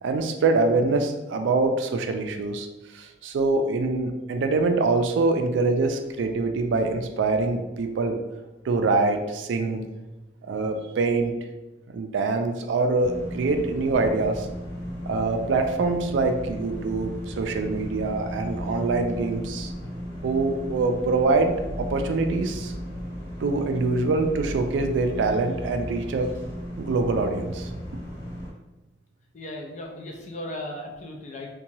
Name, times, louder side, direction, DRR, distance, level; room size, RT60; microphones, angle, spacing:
voice 1, 0.0-2.7 2.9-8.2 8.6-9.8 10.5-11.3 11.9-14.5 15.1-19.7 20.2-21.5 21.8-22.7 23.4-26.3 26.8-27.7, right 3 dB, 80° right, 6 dB, 0.3 m, -24 dB
sound 1, 13.0-28.5, equal, 25° left, 0.9 m, -35 dB
voice 2, 13.2-13.6 13.9-14.0 18.5-19.1 29.3-31.5, left 1 dB, 40° left, 1 dB, 0.4 m, -38 dB
2.8 x 2.2 x 2.7 m, 1.1 s
head